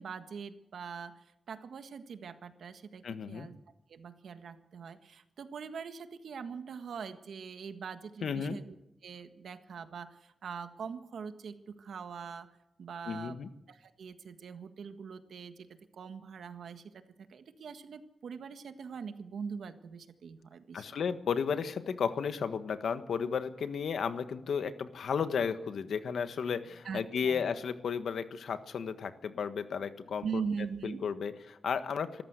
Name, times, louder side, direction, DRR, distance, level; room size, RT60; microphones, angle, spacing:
voice 1, 0.0-3.6 3.9-8.7 9.0-12.5 12.8-13.4 13.7-15.7 15.9-16.9 17.2-20.9 26.8-27.4 30.2-31.0, right 6 dB, 80° right, 9 dB, 1.6 m, -42 dB
voice 2, 3.0-3.5 8.2-8.6 13.1-13.5 20.7-30.4 30.8-32.2, left 6 dB, 80° left, 10 dB, 1.5 m, -33 dB
25.5 x 14.0 x 8.1 m, 0.87 s
wide cardioid pair, 170°, 0 cm